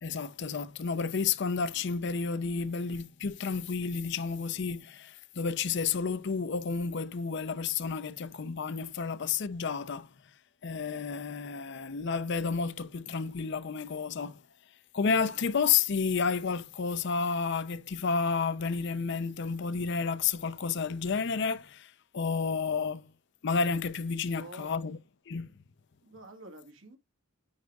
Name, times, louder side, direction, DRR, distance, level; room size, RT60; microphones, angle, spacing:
voice 1, 0.0-10.1 10.6-14.4 14.9-23.1 23.4-25.0 25.3-25.5, left 5 dB, 55° left, 0.5 m, -31 dB
voice 2, 24.2-24.7 26.0-27.0, right 2 dB, 70° right, 2.0 m, -48 dB
9.6 x 4.7 x 2.3 m
head